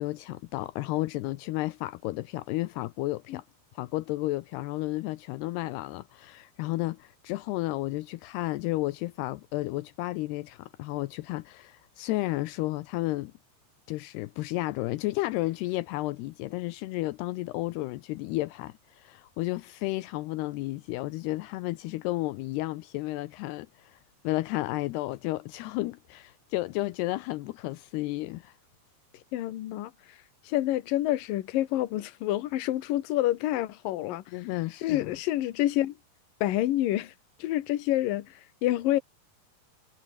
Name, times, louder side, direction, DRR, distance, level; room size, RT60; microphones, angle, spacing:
voice 1, 0.0-3.4 3.7-13.3 13.9-24.0 24.2-28.6 34.3-35.1, left 19 dB, 80° left, 2.7 m, -32 dB
voice 2, 29.3-29.9 30.5-34.2 34.8-35.9 36.4-37.1 37.4-39.0, left 14 dB, 65° left, 2.7 m, -28 dB
omnidirectional pair, 4.9 m